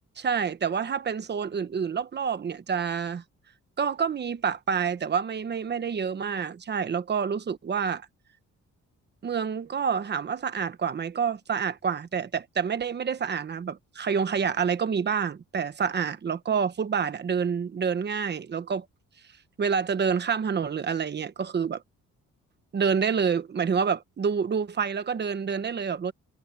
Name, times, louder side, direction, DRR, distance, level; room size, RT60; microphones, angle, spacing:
voice 1, 0.2-3.2 3.8-8.1 9.2-18.8 19.6-21.8 22.7-26.1, right 6 dB, 35° right, 1.2 m, -28 dB
cardioid pair, 160°, 31 cm